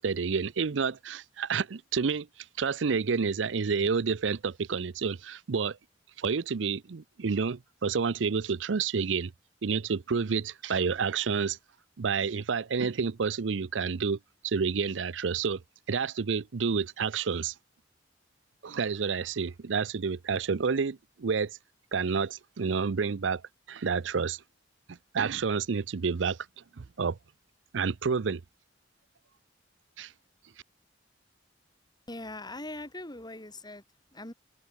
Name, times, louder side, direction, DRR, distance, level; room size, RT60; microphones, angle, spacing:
voice 1, 0.0-2.3 2.6-5.8 6.2-9.3 9.6-11.6 12.0-14.2 14.4-15.6 15.9-17.5 18.6-21.6 21.9-23.4 23.7-24.4 24.9-26.4 26.8-27.2 27.7-28.4 30.0-30.1, right 5 dB, 80° right, 0.6 m, -29 dB
voice 2, 32.1-33.8 34.1-34.3, left 2 dB, 25° left, 4.3 m, -41 dB
head